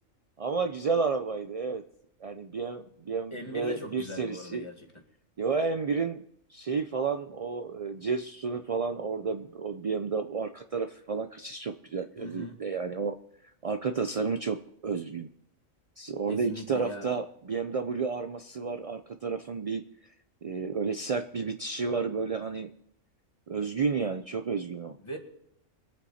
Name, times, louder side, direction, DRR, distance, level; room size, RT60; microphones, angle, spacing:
voice 1, 0.4-1.8 2.2-4.6 5.4-6.2 6.5-13.2 13.4-15.3 16.0-20.1 20.4-22.7 23.5-25.0, right 5 dB, 60° right, 8 dB, 0.3 m, -31 dB
voice 2, 3.3-4.9 12.2-12.6 16.3-17.1 25.0-25.2, equal, 20° left, 2 dB, 2.0 m, -40 dB
23.5 x 8.5 x 4.3 m, 0.74 s
omnidirectional pair, 1.4 m